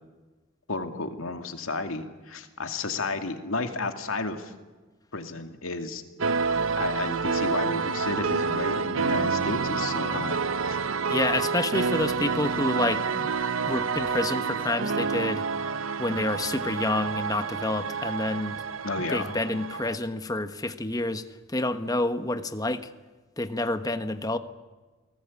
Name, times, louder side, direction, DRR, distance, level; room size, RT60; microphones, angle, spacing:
voice 1, 0.7-4.5 5.1-6.0 6.8-10.8 18.8-19.3, left 3 dB, 90° left, 6 dB, 2.3 m, -32 dB
sound 1, 6.2-20.0, right 5 dB, 80° right, 0.8 m, -28 dB
voice 2, 11.1-13.4 13.7-15.5 16.0-18.6 19.1-21.2 21.5-22.9 23.4-24.4, left 2 dB, 20° left, 10 dB, 1.1 m, -28 dB
28.5 x 19.0 x 8.5 m, 1.3 s
head